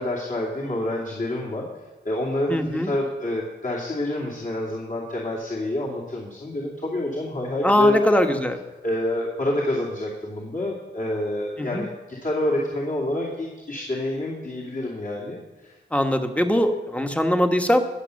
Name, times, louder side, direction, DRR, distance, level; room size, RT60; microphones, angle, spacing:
voice 1, 0.0-1.6 2.0-8.2 8.8-15.8, left 1 dB, 45° left, -4 dB, 2.8 m, -27 dB
voice 2, 2.5-2.9 7.6-8.6 11.6-11.9 15.9-17.8, equal, 5° left, 5 dB, 1.3 m, -21 dB
20.0 x 6.8 x 6.5 m, 1.2 s
wide cardioid pair, 80°, 19 cm